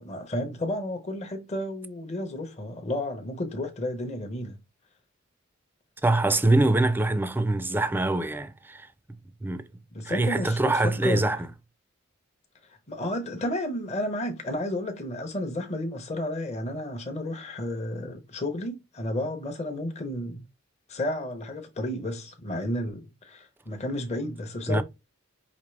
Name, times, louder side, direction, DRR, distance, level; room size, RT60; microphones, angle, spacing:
voice 1, 0.0-4.6 9.9-11.4 12.7-20.4 20.9-24.8, left 1 dB, 35° left, 0.7 m, -32 dB
voice 2, 6.0-8.9 9.4-9.7 10.0-11.4 24.7-24.8, right 2 dB, 10° right, 0.4 m, -24 dB
5.1 x 2.9 x 3.2 m
head